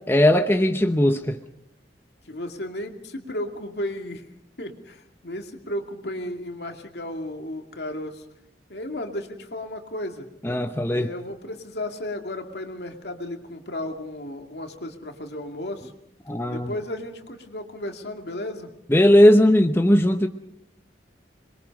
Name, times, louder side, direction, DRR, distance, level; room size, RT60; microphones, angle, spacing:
voice 1, 0.1-1.4 10.4-11.1 16.3-16.7 18.9-20.3, left 1 dB, 15° left, 6 dB, 0.9 m, -18 dB
voice 2, 2.2-4.3 4.6-8.2 8.7-10.3 10.9-15.9 16.5-18.7, left 1 dB, 65° left, 4 dB, 2.4 m, -34 dB
26.5 x 22.0 x 5.3 m, 0.76 s
head